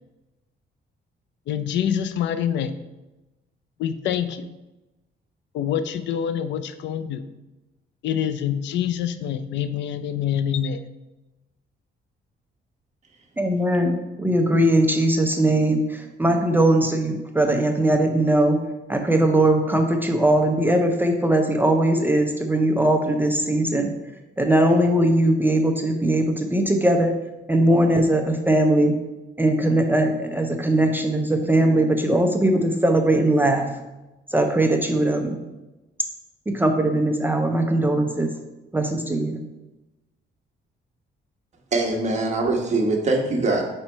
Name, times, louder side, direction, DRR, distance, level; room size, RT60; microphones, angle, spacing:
voice 1, 1.5-2.7 3.8-4.5 5.5-7.3 8.0-10.8, left 9 dB, 70° left, 10 dB, 0.4 m, -26 dB
voice 2, 13.4-18.6 18.9-23.9 24.4-27.1 27.5-28.9 29.4-33.7 34.3-35.4 36.5-38.3 38.7-39.4, right 1 dB, 10° right, 3 dB, 0.4 m, -20 dB
voice 3, 41.7-43.6, right 2 dB, 35° right, 0 dB, 1.1 m, -22 dB
5.2 x 4.3 x 4.4 m, 1.0 s
cardioid pair, 145°, 19 cm